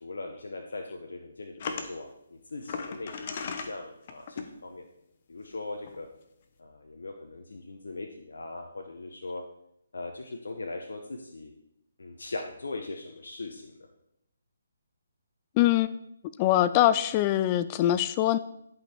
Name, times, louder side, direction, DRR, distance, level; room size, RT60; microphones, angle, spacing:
voice 1, 0.0-4.9 5.3-6.1 6.6-9.4 9.9-11.5 12.0-13.8, left 2 dB, 80° left, 3 dB, 1.0 m, -40 dB
sound 1, 1.6-1.9 2.7-3.7 4.1-4.5 5.5-5.6 5.9-6.0, left 5 dB, 40° left, 1.0 m, -36 dB
voice 2, 15.6-15.9 16.4-18.4, left 13 dB, 25° left, 14 dB, 0.3 m, -23 dB
11.0 x 5.4 x 4.4 m, 0.79 s
hypercardioid pair, 155°, 0 cm